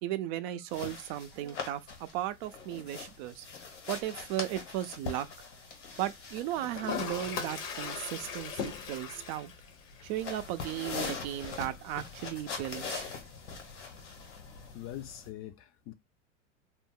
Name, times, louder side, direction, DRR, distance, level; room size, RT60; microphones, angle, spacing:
voice 1, 0.0-3.5 3.9-5.3 6.0-9.5 10.0-13.0, right 13 dB, 55° right, 0.5 m, -36 dB
sound 1, 0.7-15.3, left 5 dB, 75° left, 1.4 m, -43 dB
Toilet flush, 6.7-14.7, left 6 dB, 55° left, 0.9 m, -42 dB
voice 2, 14.7-15.9, left 12 dB, 40° left, 0.4 m, -43 dB
2.6 x 2.0 x 3.6 m
hypercardioid pair, 100°, 36 cm